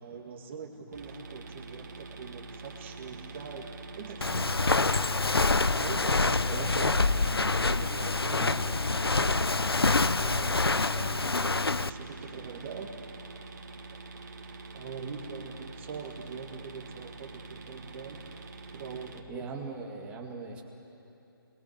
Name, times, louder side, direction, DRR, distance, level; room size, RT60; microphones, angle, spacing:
voice 1, 0.0-5.3 5.7-7.0 7.5-9.5 10.2-12.9 14.7-18.2 18.7-19.5, right 5 dB, 30° right, 2 dB, 2.1 m, -43 dB
sound 1, 0.9-19.2, right 3 dB, 45° right, 2.2 m, -45 dB
Walk footsteps, 4.2-11.9, left 3 dB, 90° left, 0.7 m, -26 dB
voice 2, 6.5-7.6 8.4-9.2 19.3-20.6, right 4 dB, 10° right, 0 dB, 2.0 m, -41 dB
27.5 x 21.0 x 6.7 m, 2.9 s
figure-of-eight pair, 150°, 12 cm